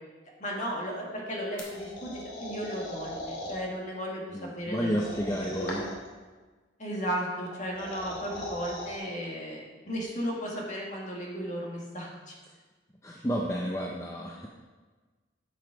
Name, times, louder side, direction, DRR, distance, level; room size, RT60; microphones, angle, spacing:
voice 1, 0.4-5.0 5.2-5.8 6.8-12.4, equal, 40° left, -2 dB, 2.0 m, -35 dB
sound 1, 1.6-3.6 4.9-6.1 7.5-9.0, left 1 dB, 90° left, 2.8 m, -39 dB
voice 2, 4.3-5.8 13.0-14.5, equal, 15° left, -2 dB, 0.6 m, -31 dB
12.0 x 5.6 x 5.0 m, 1.4 s
head